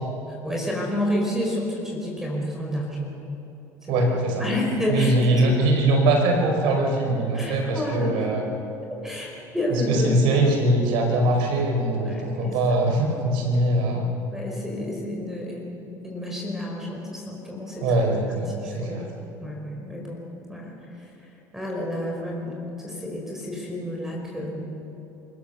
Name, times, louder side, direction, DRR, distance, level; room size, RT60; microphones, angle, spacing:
voice 1, 0.4-3.2 4.4-5.5 7.3-8.2 9.0-10.1 12.0-12.6 14.3-15.6 16.0-17.9 18.5-19.0 19.4-20.2 20.5-20.7 21.5-24.6, left 1 dB, 5° right, -1 dB, 4.7 m, -30 dB
voice 2, 3.9-4.5 4.9-8.4 9.7-14.1 17.8-19.0, right 1 dB, 75° right, 2 dB, 4.8 m, -22 dB
26.0 x 16.0 x 6.8 m, 3.0 s
supercardioid pair, 90°, 9 cm